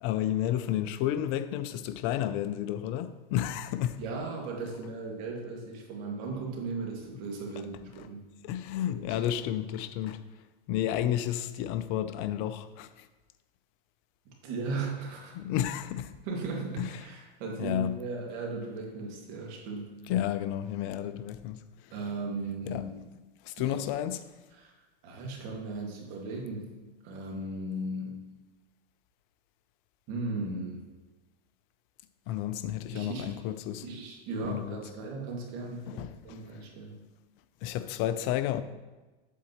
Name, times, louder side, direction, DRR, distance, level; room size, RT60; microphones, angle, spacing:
voice 1, 0.0-4.0 8.0-8.1 8.4-10.2 10.7-13.1 15.3-16.1 16.8-16.9 17.6-17.9 20.1-21.6 22.7-22.8 23.4-24.2 32.3-33.9 34.4-34.8 35.9-36.4 37.6-38.6, left 11 dB, 45° left, 0.5 m, -31 dB
voice 2, 4.0-8.3 8.9-9.2 14.3-15.4 16.2-20.0 21.9-23.1 23.6-23.8 24.5-24.7 25.0-26.7 27.0-28.2 30.1-30.8 32.9-33.3 33.8-37.0, right 3 dB, 55° right, 2.1 m, -37 dB
8.3 x 8.2 x 3.0 m
hypercardioid pair, 125°, 30 cm